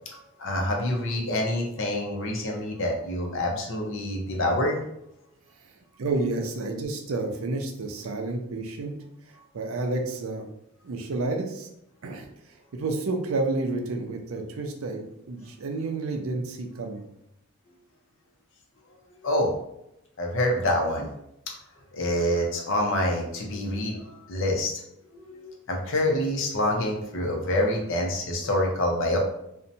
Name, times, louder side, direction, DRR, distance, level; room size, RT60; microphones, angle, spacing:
voice 1, 0.1-4.8 19.2-19.6 20.2-21.1 21.9-24.7 25.1-29.2, left 1 dB, 65° left, 1 dB, 0.6 m, -26 dB
voice 2, 6.0-8.9 9.5-10.5 10.8-11.7 12.0-12.3 12.7-17.0, right 3 dB, 80° right, 4 dB, 0.5 m, -30 dB
2.6 x 2.1 x 2.6 m, 0.80 s
head